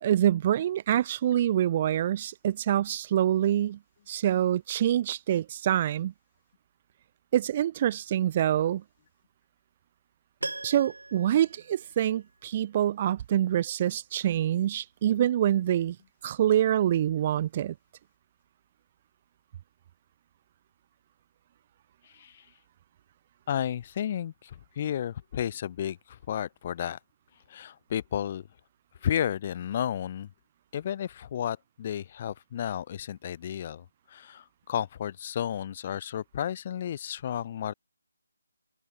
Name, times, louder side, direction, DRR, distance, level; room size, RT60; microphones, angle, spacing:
voice 1, 0.0-3.8 4.1-6.1 7.3-8.8 10.6-16.0 16.2-17.7, right 11 dB, 30° right, 0.3 m, -26 dB
Piano, 10.4-12.5 12.8-12.9, right 2 dB, 80° right, 2.0 m, -40 dB
voice 2, 22.0-22.5 23.5-27.0 27.5-28.5 29.0-30.3 30.7-37.7, left 10 dB, 30° left, 0.9 m, -32 dB
figure-of-eight pair, 155°, 0 cm